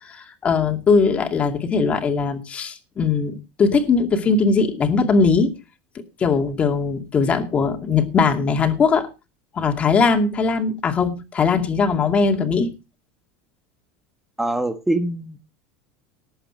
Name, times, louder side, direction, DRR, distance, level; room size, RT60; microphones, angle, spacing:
voice 1, 0.0-5.6 6.2-9.1 9.5-12.7, left 4 dB, 25° left, 2.4 m, -20 dB
voice 2, 14.4-15.4, right 1 dB, 5° right, 1.4 m, -23 dB
18.5 x 8.1 x 4.4 m
supercardioid pair, 140°, 5 cm